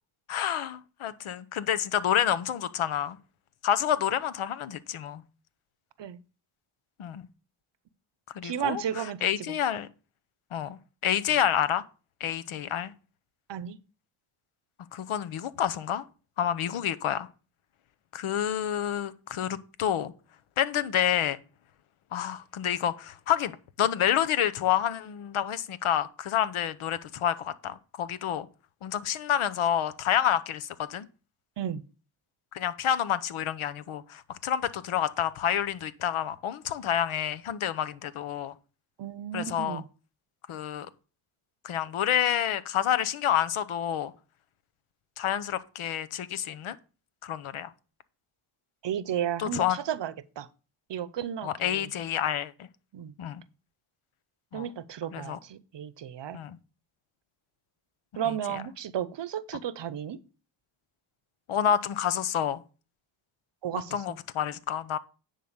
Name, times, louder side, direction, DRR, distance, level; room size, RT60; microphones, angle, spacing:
voice 1, 0.3-3.2 3.6-5.2 7.0-7.3 8.3-9.9 10.5-10.8 11.0-11.8 12.2-12.9 14.9-16.0 16.4-17.3 18.1-20.1 20.6-21.4 22.1-23.5 23.8-28.5 28.8-31.1 32.5-38.5 39.3-39.8 40.5-40.9 41.6-44.1 45.2-46.8 47.2-47.7 49.4-49.8 51.4-52.7 53.2-53.4 54.5-54.7 55.1-55.4 56.3-56.6 61.5-62.6 63.9-65.0, left 10 dB, 75° left, 0.9 m, -28 dB
voice 2, 8.4-9.5 13.5-13.8 31.6-31.8 39.0-39.8 48.8-50.5 50.9-51.9 52.9-53.1 54.5-56.4 58.2-60.2 63.6-64.2, right 10 dB, 60° right, 0.8 m, -33 dB
10.0 x 4.0 x 6.6 m
cardioid pair, 60°, 50 cm